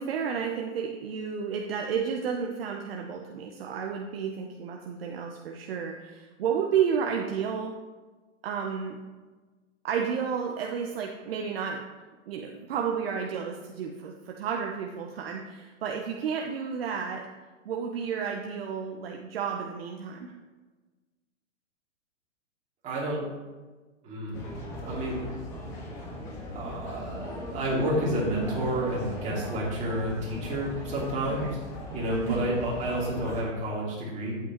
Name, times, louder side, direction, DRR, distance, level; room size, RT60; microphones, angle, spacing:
voice 1, 0.0-7.7 8.4-9.0 9.8-11.8 12.3-17.3 17.6-20.3 31.4-31.5 32.3-32.5, right 7 dB, 50° right, 1 dB, 1.0 m, -31 dB
voice 2, 22.8-23.3 24.0-24.4 24.8-25.2 26.5-31.5 31.9-34.4, right 1 dB, 20° right, -5 dB, 2.9 m, -30 dB
sound 1, 24.3-33.4, left 1 dB, 5° left, 0.4 m, -39 dB
11.0 x 8.6 x 3.1 m, 1.3 s
hypercardioid pair, 145°, 38 cm